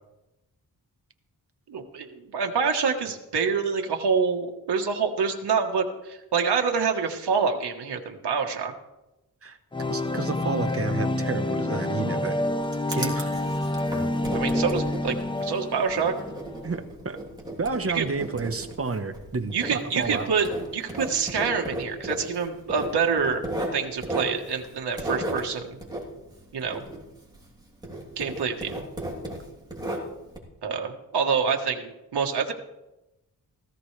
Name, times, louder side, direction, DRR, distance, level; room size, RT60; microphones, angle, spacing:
voice 1, 1.7-8.7 14.3-16.1 17.8-18.1 19.5-20.5 20.7-23.4 23.7-25.8 26.5-26.8 28.2-28.8 30.6-32.5, right 6 dB, 90° right, 2 dB, 1.4 m, -26 dB
sound 1, 9.7-16.6, left 2 dB, 15° left, 0.7 m, -28 dB
voice 2, 9.9-12.3 12.9-13.4 16.6-17.2 17.6-20.3, right 4 dB, 35° right, 7 dB, 1.2 m, -30 dB
Writing, 12.2-27.6 27.8-30.4, right 1 dB, 10° right, 3.1 m, -35 dB
17.5 x 15.0 x 3.3 m, 0.99 s
wide cardioid pair, 115°, 39 cm